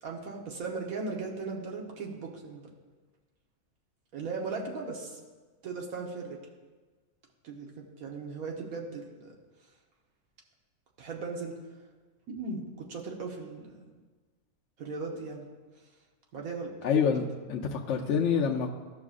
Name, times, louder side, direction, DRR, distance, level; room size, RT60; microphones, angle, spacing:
voice 1, 0.0-2.7 4.1-5.2 5.6-6.4 7.4-9.3 11.0-11.5 12.3-13.8 14.8-15.5 16.3-16.7, right 4 dB, 75° right, 0 dB, 1.5 m, -37 dB
voice 2, 16.8-18.7, left 6 dB, 65° left, 0 dB, 0.8 m, -27 dB
14.5 x 6.1 x 2.4 m, 1.4 s
omnidirectional pair, 1.5 m